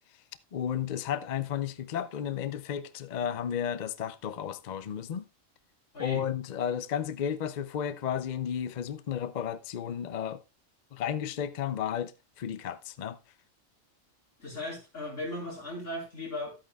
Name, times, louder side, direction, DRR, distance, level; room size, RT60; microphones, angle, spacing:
voice 1, 0.5-5.3 6.0-10.4 10.9-13.2, left 9 dB, 55° left, 0.5 m, -33 dB
voice 2, 14.4-16.6, left 1 dB, 70° left, 4.6 m, -37 dB
12.5 x 8.8 x 2.3 m
omnidirectional pair, 1.3 m